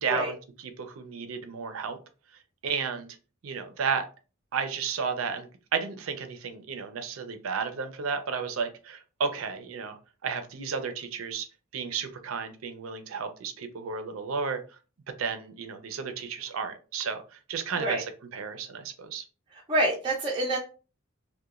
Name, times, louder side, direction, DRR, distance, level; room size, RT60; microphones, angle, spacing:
voice 1, 0.0-2.0 2.6-3.1 3.4-4.1 4.5-11.5 11.7-14.6 15.2-18.0 18.3-19.2, right 5 dB, 85° right, 8 dB, 0.5 m, -33 dB
voice 2, 19.5-20.6, right 1 dB, 25° right, -3 dB, 0.4 m, -27 dB
2.9 x 2.1 x 2.3 m, 0.35 s
head